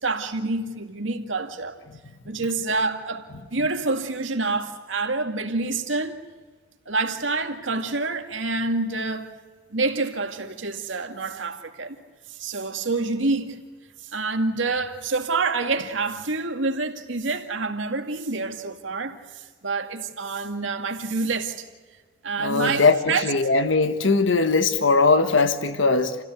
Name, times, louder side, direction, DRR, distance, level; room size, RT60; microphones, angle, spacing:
voice 1, 0.0-1.8 2.3-6.3 6.9-9.3 9.7-12.0 12.3-13.6 14.1-21.7 22.2-23.3, right 3 dB, 85° right, 2.2 m, -27 dB
voice 2, 22.4-26.2, left 3 dB, 85° left, 1.4 m, -20 dB
29.0 x 16.5 x 7.9 m
head